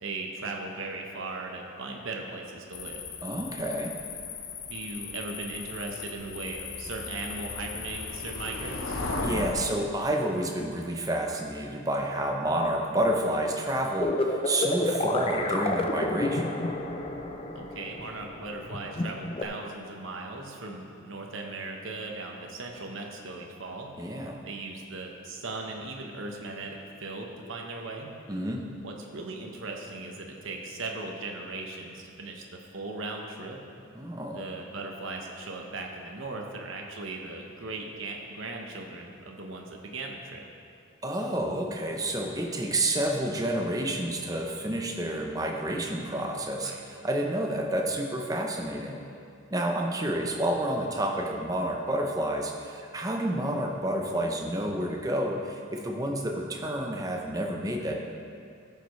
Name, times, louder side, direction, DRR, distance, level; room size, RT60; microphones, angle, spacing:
voice 1, 0.0-3.0 4.7-9.0 17.5-23.9 24.4-28.1 28.8-32.4 32.7-33.6 34.3-40.4 46.6-46.8, right 2 dB, 70° right, 1 dB, 1.0 m, -38 dB
sound 1, 2.7-9.5, left 3 dB, 75° left, 0.9 m, -36 dB
voice 2, 3.2-4.0 9.2-16.6 24.0-24.4 28.3-28.7 33.9-34.4 41.0-49.0 49.5-58.0, right 1 dB, 15° right, 1 dB, 0.7 m, -29 dB
sound 2, 14.0-19.4, left 2 dB, 25° left, 0.5 m, -30 dB
14.0 x 6.8 x 3.2 m, 2.5 s
head